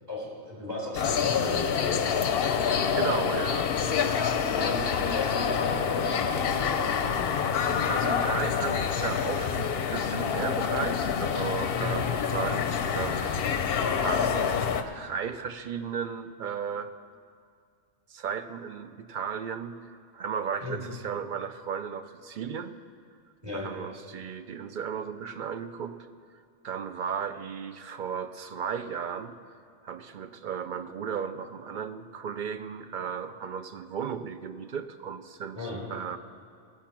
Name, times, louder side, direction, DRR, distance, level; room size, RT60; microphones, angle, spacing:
voice 1, 0.1-2.1 3.9-4.1 4.4-7.3 11.8-12.0 20.6-20.8 23.4-23.7 35.5-35.8, left 2 dB, 35° right, -4 dB, 3.8 m, -36 dB
sound 1, 0.9-14.8, left 7 dB, 55° left, 0.8 m, -27 dB
voice 2, 2.9-3.7 7.9-16.9 18.1-22.8 23.5-26.1 26.6-29.5 29.8-36.2, right 7 dB, 60° right, 10 dB, 0.5 m, -35 dB
16.5 x 7.0 x 5.9 m, 2.3 s
omnidirectional pair, 1.3 m